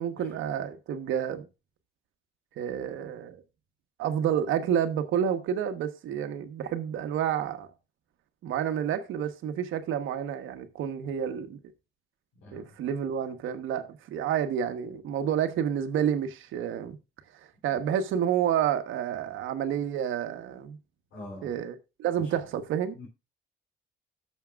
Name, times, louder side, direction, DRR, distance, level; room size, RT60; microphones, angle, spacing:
voice 1, 0.0-1.5 2.6-3.4 4.0-7.7 8.4-11.6 12.5-17.0 17.6-20.8 21.4-23.0, right 9 dB, 85° right, 1.2 m, -29 dB
voice 2, 12.4-12.8 21.1-21.6 22.1-22.5 22.9-23.1, left 1 dB, 85° left, 3.1 m, -45 dB
18.0 x 6.4 x 2.4 m
cardioid pair, 90°, 20 cm